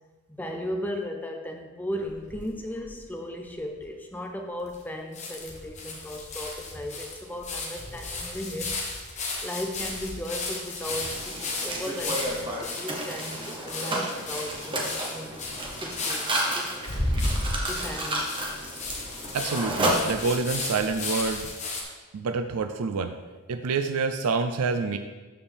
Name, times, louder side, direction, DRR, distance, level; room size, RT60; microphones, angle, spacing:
voice 1, 0.3-15.4 15.8-16.3 16.5-16.9 17.6-18.4 21.9-22.0, equal, 10° left, 3 dB, 0.5 m, -36 dB
sound 1, 2.0-3.0 3.5-3.6 3.8-3.9 4.7-4.8 5.1-21.8, left 2 dB, 30° left, 1.0 m, -34 dB
Mechanisms, 10.8-20.6, right 1 dB, 20° right, 1.0 m, -32 dB
voice 2, 19.3-21.5 22.1-23.1 23.5-25.0, right 4 dB, 85° right, 8 dB, 0.4 m, -27 dB
12.5 x 4.4 x 3.4 m, 1.3 s
head